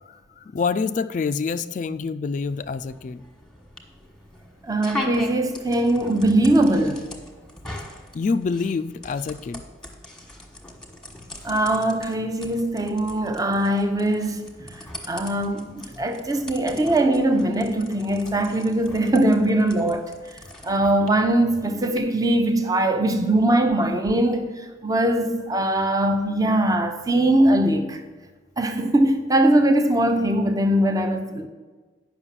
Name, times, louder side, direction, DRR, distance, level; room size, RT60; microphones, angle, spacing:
voice 1, 0.0-3.2 8.1-9.6, left 4 dB, 40° left, 0.3 m, -27 dB
sound 1, 2.4-22.0, left 1 dB, 5° left, 1.3 m, -40 dB
voice 2, 4.6-7.0 11.4-14.5 15.1-20.1 20.6-28.0 28.6-31.5, right 1 dB, 20° right, 0.7 m, -21 dB
9.7 x 5.9 x 7.3 m
head